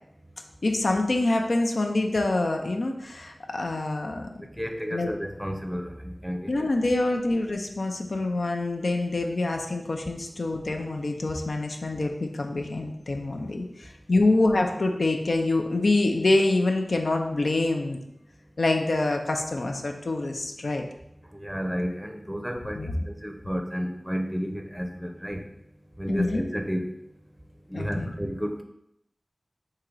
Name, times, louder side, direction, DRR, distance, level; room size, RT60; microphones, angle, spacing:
voice 1, 0.6-4.3 4.9-5.1 6.5-18.0 18.6-20.8 22.7-23.1 26.1-26.4 27.7-28.1, left 2 dB, 85° left, 3 dB, 0.5 m, -26 dB
voice 2, 4.6-6.7 21.3-25.4 26.0-26.9 27.7-28.6, equal, 5° right, 4 dB, 0.6 m, -32 dB
3.7 x 2.8 x 4.7 m, 0.78 s
wide cardioid pair, 45°, 0 cm